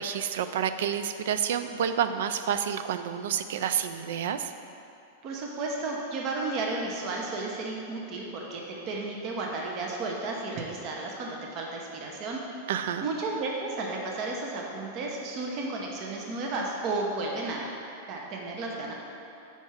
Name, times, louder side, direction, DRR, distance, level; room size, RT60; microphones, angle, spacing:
voice 1, 0.0-4.5 12.7-13.1, right 8 dB, 75° right, 10 dB, 0.3 m, -29 dB
voice 2, 5.2-12.4 13.0-17.7 18.1-18.9, right 3 dB, 45° right, -1 dB, 0.8 m, -33 dB
4.7 x 4.4 x 5.6 m, 2.7 s
hypercardioid pair, 125°, 0 cm